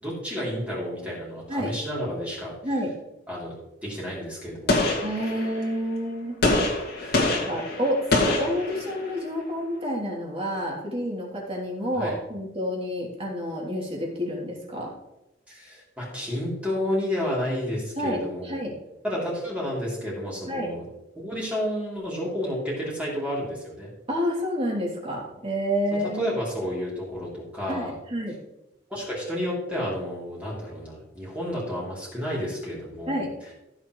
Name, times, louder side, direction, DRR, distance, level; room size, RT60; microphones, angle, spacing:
voice 1, 0.0-2.6 3.3-3.5 3.8-4.8 7.0-7.4 11.9-12.2 15.5-18.5 19.0-20.8 21.1-23.9 26.0-27.9 28.9-33.2, equal, 10° right, -6 dB, 3.3 m, -31 dB
Gunshot gunfire, 4.7-5.7 6.4-9.2, left 2 dB, 60° left, 2.2 m, -25 dB
voice 2, 5.0-6.4 7.2-14.9 18.0-18.7 20.5-20.7 24.1-26.3 27.7-28.4 33.1-33.3, equal, 30° right, -3 dB, 3.3 m, -29 dB
15.0 x 7.3 x 3.2 m, 0.92 s
head